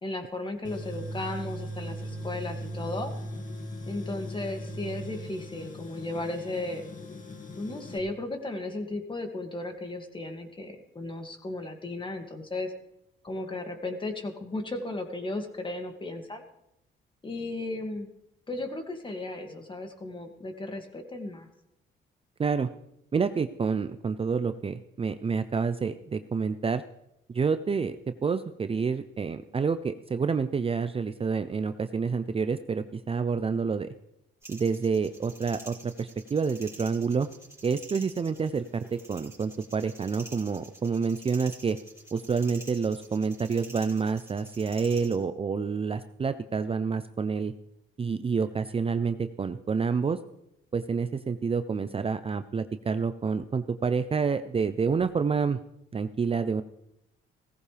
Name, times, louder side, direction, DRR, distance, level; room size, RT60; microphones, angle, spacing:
voice 1, 0.0-3.1 3.9-6.8 7.6-12.7 13.2-16.4 17.2-18.1 18.5-21.5, left 2 dB, 25° left, 4 dB, 2.3 m, -35 dB
Tools, 0.6-8.0, equal, 40° left, 2.0 m, -39 dB
voice 2, 23.1-26.8 27.3-28.0 28.2-33.9 34.5-37.3 37.6-41.8 42.1-47.5 48.0-50.2 50.7-55.6 55.9-56.6, right 5 dB, 30° right, 11 dB, 0.6 m, -28 dB
sound 1, 34.4-45.2, right 2 dB, 15° right, 4.1 m, -48 dB
17.5 x 15.0 x 3.4 m, 0.83 s
cardioid pair, 90°, 20 cm